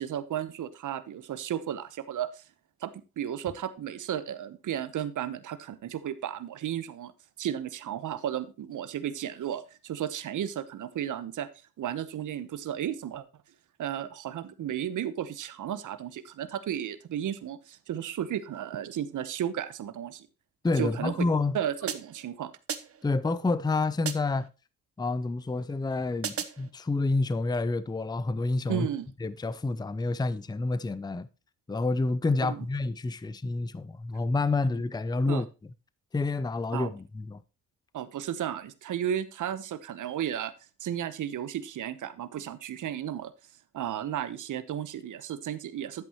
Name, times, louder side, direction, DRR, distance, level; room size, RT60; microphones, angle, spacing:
voice 1, 0.0-2.4 2.8-7.1 7.4-11.5 11.8-13.2 13.8-20.3 20.8-21.1 21.5-22.5 28.7-29.1 32.4-32.7 35.3-35.4 36.7-36.9 37.9-40.5 40.8-43.3 43.7-46.0, right 10 dB, 60° right, 1.0 m, -34 dB
voice 2, 20.6-21.6 23.0-24.5 25.0-28.9 29.2-31.3 31.7-35.5 36.1-37.4, left 3 dB, 10° left, 0.6 m, -28 dB
sound 1, 21.9-22.3 22.7-23.1 24.1-24.5 26.2-26.7, right 7 dB, 40° right, 1.1 m, -36 dB
10.5 x 8.4 x 3.0 m
supercardioid pair, 70°, 35 cm